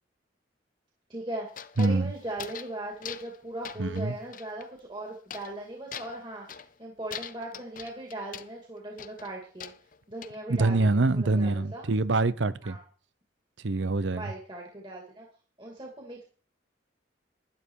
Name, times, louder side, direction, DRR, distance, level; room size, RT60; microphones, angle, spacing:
voice 1, 1.1-1.5 1.8-9.7 10.1-11.9 12.6-12.8 14.1-15.3 15.6-16.2, right 1 dB, 25° right, 2.4 m, -39 dB
sound 1, 1.5-2.8 3.0-3.4 3.6-4.7 5.3-5.6 5.9-6.7 7.1-8.5 9.0-10.4, left 8 dB, 45° left, 0.6 m, -43 dB
voice 2, 1.8-2.1 3.8-4.1 10.5-12.8 13.6-14.3, right 2 dB, 75° right, 0.8 m, -25 dB
12.0 x 11.0 x 4.7 m
head